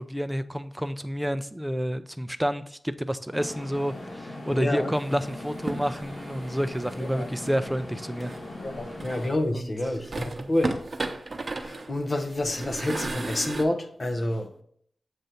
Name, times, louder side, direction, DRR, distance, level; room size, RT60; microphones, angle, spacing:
voice 1, 0.0-8.3 9.5-9.7, equal, 5° right, 0.5 m, -29 dB
sound 1, 3.3-9.3, left 2 dB, 70° left, 2.8 m, -40 dB
voice 2, 4.5-4.9 7.0-7.3 8.6-10.8 11.6-14.6, left 1 dB, 45° left, 0.8 m, -28 dB
sound 2, 4.9-7.5 8.2-9.5 9.9-13.6, right 3 dB, 50° right, 0.8 m, -36 dB
7.9 x 2.6 x 5.7 m
cardioid pair, 60°, 0 cm